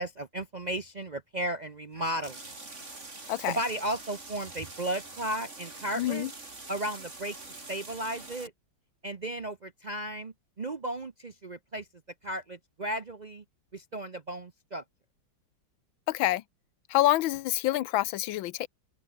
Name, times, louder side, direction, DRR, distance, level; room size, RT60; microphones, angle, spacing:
voice 1, 0.0-2.4 3.5-6.3 6.7-7.4 7.7-8.5 9.0-11.9 12.2-13.4 13.7-14.8, right 1 dB, 65° right, 0.4 m, -34 dB
sound 1, 1.9-8.5, right 3 dB, 35° right, 4.1 m, -45 dB
voice 2, 6.0-6.3 16.1-16.4 16.9-18.7, left 15 dB, 75° left, 1.5 m, -27 dB
open air
omnidirectional pair, 2.2 m